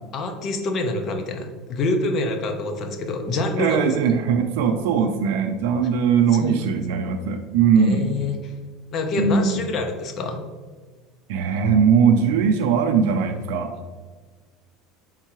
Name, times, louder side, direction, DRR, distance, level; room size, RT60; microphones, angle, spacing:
voice 1, 0.1-3.9 6.4-6.7 7.8-8.5 8.9-10.4, left 2 dB, 40° left, 4 dB, 0.6 m, -26 dB
voice 2, 3.6-8.2 9.2-9.6 11.3-13.7, right 6 dB, 85° right, 5 dB, 0.4 m, -20 dB
4.5 x 3.6 x 2.9 m, 1.4 s
cardioid pair, 145°, 0 cm